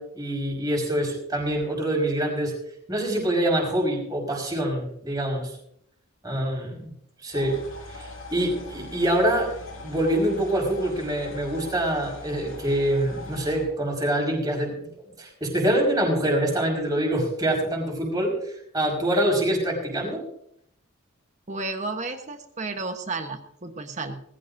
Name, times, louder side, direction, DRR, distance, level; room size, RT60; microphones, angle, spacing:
voice 1, 0.0-2.5 2.9-5.5 6.2-6.9 7.2-7.6 7.9-14.9 15.2-20.2, right 1 dB, 20° right, -1 dB, 5.3 m, -25 dB
sound 1, 7.3-13.7, left 2 dB, 80° left, 4.6 m, -41 dB
voice 2, 21.5-24.2, right 3 dB, 35° right, 6 dB, 1.2 m, -32 dB
20.5 x 15.0 x 2.7 m, 0.69 s
head